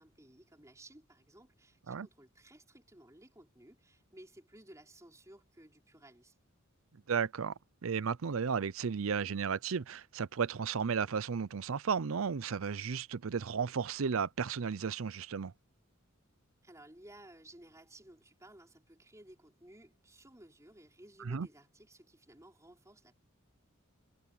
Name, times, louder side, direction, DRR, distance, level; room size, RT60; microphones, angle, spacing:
voice 1, 0.0-6.4 16.6-23.1, right 1 dB, 15° right, 5.1 m, -57 dB
voice 2, 7.1-7.5 7.8-15.5 21.2-21.5, right 6 dB, 70° right, 0.5 m, -34 dB
head